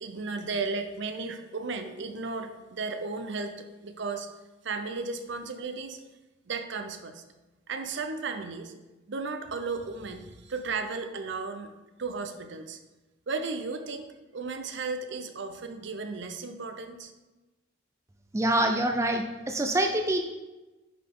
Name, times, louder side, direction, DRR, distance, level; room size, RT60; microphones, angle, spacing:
voice 1, 0.0-4.3 4.6-6.0 6.5-7.2 7.7-8.7 9.1-11.7 12.0-12.8 13.3-17.1, right 4 dB, 60° right, 7 dB, 0.6 m, -34 dB
voice 2, 18.3-20.2, right 1 dB, 15° right, 4 dB, 0.4 m, -25 dB
10.0 x 4.0 x 3.8 m, 1.1 s
head